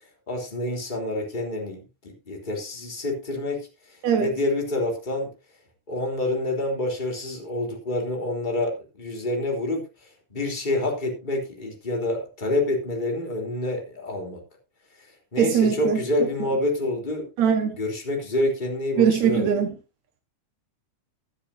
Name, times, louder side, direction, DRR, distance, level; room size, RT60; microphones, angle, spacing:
voice 1, 0.3-3.7 4.2-5.3 5.9-9.8 10.3-14.4 15.3-17.3 17.8-19.4, left 1 dB, 15° left, 3.1 m, -27 dB
voice 2, 15.4-16.0 16.4-16.5 17.4-17.8 19.0-19.7, right 7 dB, 65° right, 2.7 m, -21 dB
16.0 x 10.0 x 2.7 m
omnidirectional pair, 3.5 m